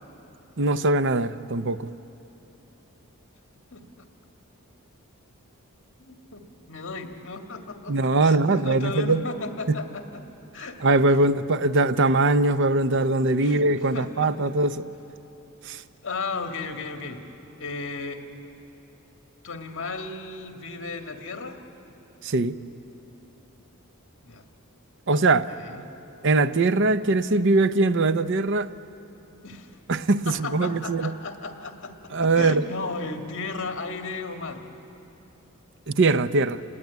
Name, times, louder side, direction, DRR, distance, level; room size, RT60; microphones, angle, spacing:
voice 1, 0.6-1.9 7.9-9.2 9.7-9.8 10.8-14.8 15.6-15.8 22.2-22.6 25.1-25.5 26.2-28.7 29.9-31.1 32.1-32.7 35.9-36.6, right 2 dB, 55° right, 12 dB, 0.7 m, -21 dB
voice 2, 3.7-4.0 6.0-6.4 6.7-10.2 10.5-11.0 13.4-13.7 13.9-14.3 16.0-17.2 17.6-18.2 19.4-21.6 24.2-24.4 25.5-25.8 29.4-29.8 30.3-31.9 32.2-34.6, left 3 dB, 60° left, 4 dB, 2.0 m, -35 dB
29.0 x 20.0 x 9.4 m, 2.9 s
head